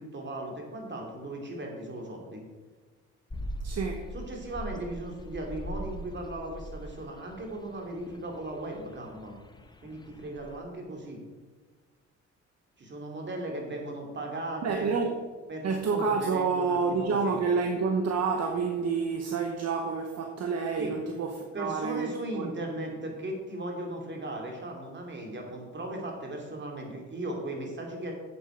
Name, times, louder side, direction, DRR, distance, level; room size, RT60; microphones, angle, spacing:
voice 1, 0.0-2.4 4.1-9.3 9.8-11.2 12.8-14.9 15.5-17.3 20.8-20.9 21.5-28.1, right 1 dB, 35° right, 1 dB, 2.6 m, -37 dB
sound 1, 3.3-10.6, right 1 dB, 15° left, 0.8 m, -41 dB
voice 2, 3.6-4.0 14.6-15.2 15.6-22.5 22.8-23.0, right 5 dB, 60° right, 3 dB, 1.0 m, -29 dB
8.0 x 7.8 x 5.0 m, 1.4 s
cardioid pair, 90°, 30 cm